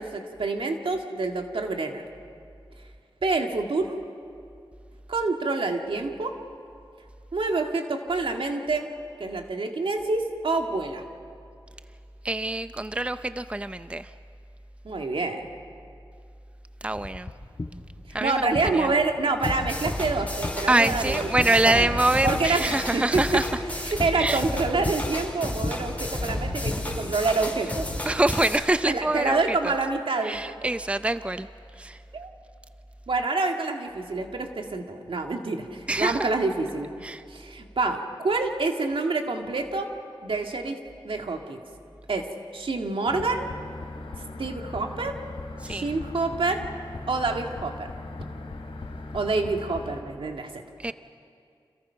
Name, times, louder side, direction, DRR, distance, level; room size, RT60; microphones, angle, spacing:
voice 1, 0.0-2.0 3.2-4.0 5.1-6.3 7.3-8.9 9.2-11.0 14.8-15.5 18.2-21.9 22.2-23.2 23.8-27.9 28.9-30.4 32.1-32.3 33.1-36.9 37.3-39.9 40.2-40.8 41.0-41.6 42.1-42.3 42.5-43.5 44.4-45.1 45.7-46.6 47.1-47.9 49.1-50.5, right 3 dB, 75° right, 3 dB, 2.3 m, -27 dB
voice 2, 12.2-14.1 16.8-17.3 18.1-18.9 20.7-23.5 24.1-24.4 28.1-29.7 30.2-31.5 31.8-32.0 35.9-36.3 37.0-37.2 45.6-45.9 50.8-50.9, right 2 dB, 15° right, 12 dB, 0.6 m, -25 dB
sound 1, 16.9-26.7, left 2 dB, 35° left, 1.5 m, -37 dB
sound 2, 19.4-28.6, left 1 dB, 15° left, 5.4 m, -32 dB
sound 3, 43.0-50.0, left 2 dB, 80° left, 3.2 m, -39 dB
29.5 x 26.5 x 5.8 m, 2.4 s
wide cardioid pair, 60°, 9 cm